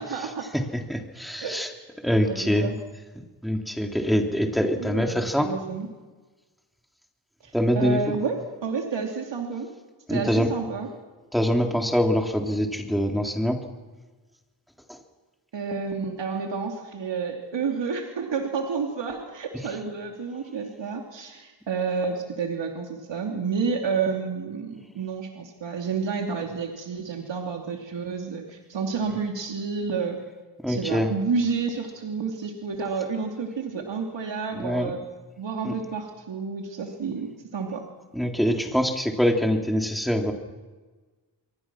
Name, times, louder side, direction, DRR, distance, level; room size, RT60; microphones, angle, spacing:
voice 1, 0.0-0.5 1.4-1.8 2.3-2.7 4.8-5.9 7.4-9.7 10.1-10.9 15.5-30.2 30.7-35.0 35.4-37.8, right 5 dB, 80° right, 2 dB, 2.9 m, -30 dB
voice 2, 0.5-1.7 2.0-2.7 3.4-5.5 7.5-8.0 10.1-10.5 11.3-13.6 14.9-15.0 30.6-31.1 34.5-34.9 35.6-35.7 38.1-40.3, equal, ahead, 2 dB, 3.5 m, -24 dB
28.0 x 23.0 x 6.2 m, 1.3 s
wide cardioid pair, 85°, 43 cm